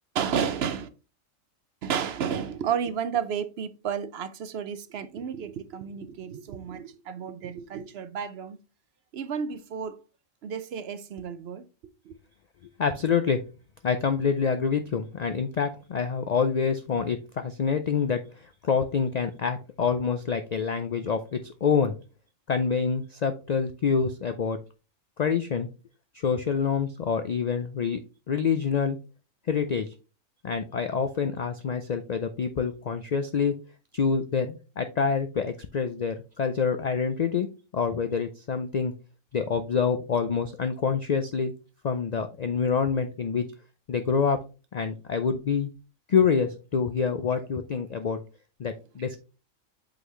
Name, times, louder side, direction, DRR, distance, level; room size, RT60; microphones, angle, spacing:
voice 1, 0.1-0.9 1.8-8.6 9.1-10.0 10.4-11.7 12.1-12.2, right 7 dB, 60° right, 0.7 m, -32 dB
voice 2, 12.8-13.4 13.8-18.2 18.6-22.0 22.5-24.6 25.2-25.7 26.2-28.0 28.3-29.0 29.5-29.9 30.4-33.5 33.9-37.5 37.7-38.9 39.3-41.5 41.8-43.5 43.9-44.4 44.7-45.7 46.1-48.2 48.6-49.2, left 6 dB, 70° left, 0.3 m, -26 dB
8.3 x 4.0 x 3.1 m
omnidirectional pair, 1.4 m